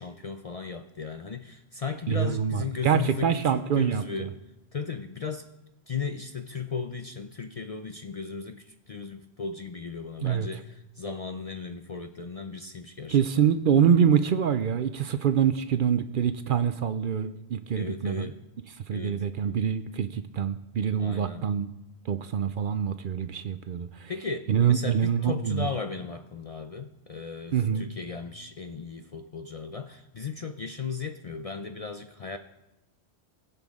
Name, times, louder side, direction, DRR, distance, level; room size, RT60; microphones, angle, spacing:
voice 1, 0.0-4.3 4.7-5.5 5.9-13.5 17.7-18.4 18.9-19.2 21.0-21.4 24.1-32.4, left 5 dB, 50° left, 7 dB, 0.5 m, -36 dB
voice 2, 2.1-4.3 10.2-10.5 13.1-18.3 18.9-21.7 22.1-24.1 24.5-25.7 27.5-27.9, right 8 dB, 60° right, 11 dB, 0.6 m, -25 dB
20.0 x 6.9 x 3.6 m, 0.96 s
omnidirectional pair, 1.1 m